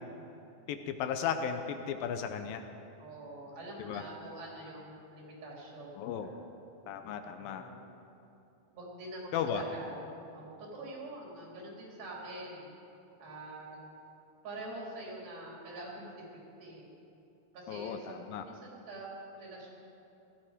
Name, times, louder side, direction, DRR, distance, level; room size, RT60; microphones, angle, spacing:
voice 1, 0.7-2.6 3.8-4.0 6.0-6.3 6.9-7.7 9.3-9.6 17.7-18.4, left 8 dB, 80° left, 7 dB, 2.4 m, -35 dB
voice 2, 3.0-6.4 7.4-7.9 8.7-10.0 10.3-12.7 13.2-13.8 14.4-16.9 17.5-18.1 18.4-19.7, right 1 dB, 75° right, -3 dB, 5.0 m, -45 dB
17.5 x 13.5 x 5.0 m, 2.8 s
omnidirectional pair, 4.4 m